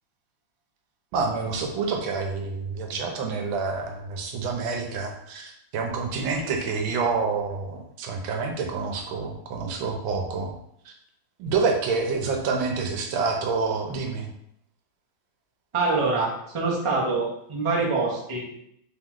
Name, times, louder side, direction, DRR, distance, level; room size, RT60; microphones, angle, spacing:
voice 1, 1.1-10.5 11.4-14.3, right 4 dB, 80° right, 2 dB, 1.5 m, -28 dB
voice 2, 15.7-18.5, right 3 dB, 45° right, -4 dB, 0.3 m, -25 dB
3.7 x 3.0 x 3.6 m, 0.74 s
omnidirectional pair, 2.2 m